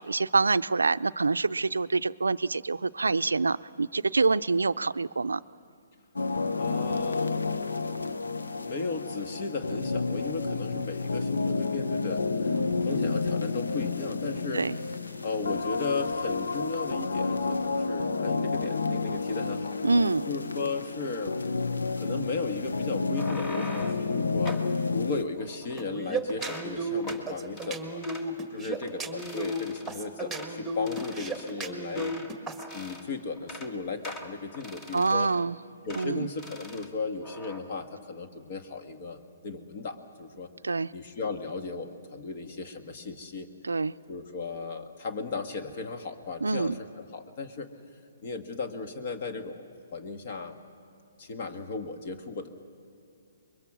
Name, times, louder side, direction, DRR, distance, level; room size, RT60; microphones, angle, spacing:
voice 1, 0.0-5.4 14.5-14.8 19.8-20.3 34.9-35.6 35.9-36.3 40.6-40.9 43.6-43.9 46.4-46.7, right 3 dB, 90° right, 14 dB, 0.4 m, -26 dB
sound 1, 6.2-25.2, left 4 dB, 85° left, 0.9 m, -30 dB
voice 2, 6.6-7.6 8.6-14.6 15.2-19.8 20.3-21.4 21.9-24.6 24.9-28.0 28.5-32.2 32.7-35.3 35.8-39.2 39.4-40.5 40.9-43.5 44.1-47.7 48.2-50.6 51.2-52.5, left 4 dB, 50° left, 7 dB, 1.6 m, -36 dB
sound 2, 23.0-24.1 24.4-24.7 25.4-26.0 26.3-26.7 27.0-27.2 27.6-27.7 28.0-28.3 28.7-28.9 29.2-29.9 30.3-30.5 30.9-32.3 32.6-33.1 33.4-33.7 34.0-35.4 35.9-36.1 36.4-36.9 37.2-37.6, left 1 dB, 25° left, 1.7 m, -43 dB
sound 3, 25.8-32.6, right 2 dB, ahead, 1.8 m, -34 dB
25.0 x 22.0 x 6.1 m, 2.6 s
hypercardioid pair, 140°, 0 cm